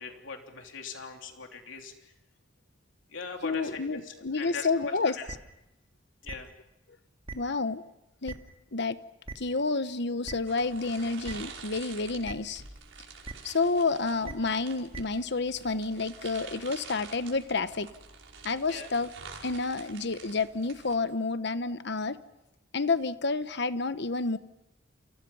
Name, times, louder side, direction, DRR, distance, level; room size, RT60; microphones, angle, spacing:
voice 1, 0.0-1.9 3.1-5.2 6.2-6.5 18.7-18.9, left 4 dB, 90° left, 3 dB, 3.2 m, -40 dB
voice 2, 3.4-5.2 7.3-7.8 8.2-8.4 8.7-9.0 9.3-12.6 13.4-17.9 18.4-19.1 19.4-22.2 22.7-24.4, left 3 dB, 65° left, 12 dB, 1.2 m, -29 dB
sound 1, 5.3-5.4 6.3-6.4 7.3-7.4 8.3-8.4 9.2-9.3 10.2-10.3 11.2-11.3 12.2-12.3 13.2-13.3 14.2-14.3 14.9-15.0, right 3 dB, 30° right, 2.4 m, -38 dB
sound 2, 10.5-21.0, right 5 dB, 85° right, 5.3 m, -48 dB
29.5 x 29.0 x 5.6 m, 0.89 s
head